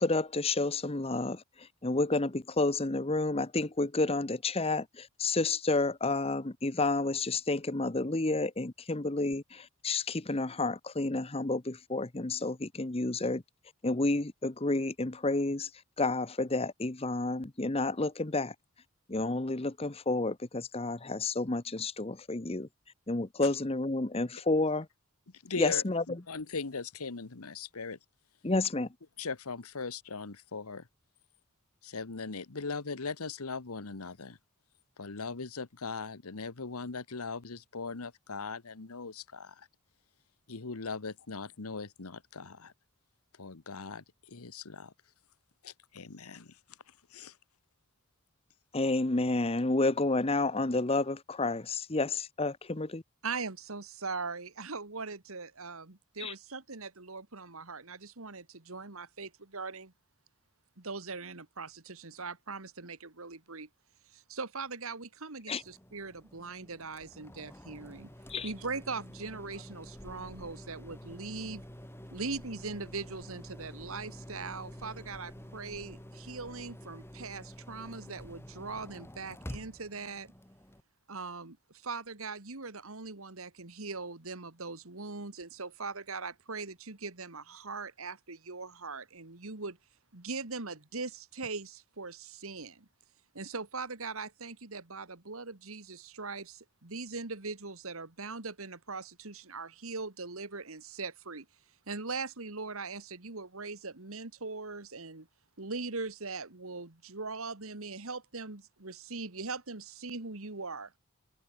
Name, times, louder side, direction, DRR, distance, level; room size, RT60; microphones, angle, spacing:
voice 1, 0.0-1.4 1.8-13.4 13.8-15.7 16.0-18.5 19.1-22.7 23.1-24.9 25.6-26.0 28.4-28.9 48.7-53.0 56.2-56.3 65.5-65.6 68.3-68.5, left 2 dB, 25° left, 0.9 m, -30 dB
voice 2, 25.4-28.0 29.2-30.8 31.8-34.4 35.0-39.7 40.5-42.7 43.4-44.9 45.6-46.5 47.1-47.3, left 4 dB, 80° left, 1.2 m, -39 dB
voice 3, 53.2-59.9 60.8-63.7 64.1-68.1 68.4-71.6 72.1-80.3 81.1-89.8 90.1-92.9 93.3-101.5 101.9-105.3 105.6-110.9, right 4 dB, 70° right, 2.0 m, -40 dB
sound 1, 65.6-80.8, equal, 10° left, 5.4 m, -48 dB
head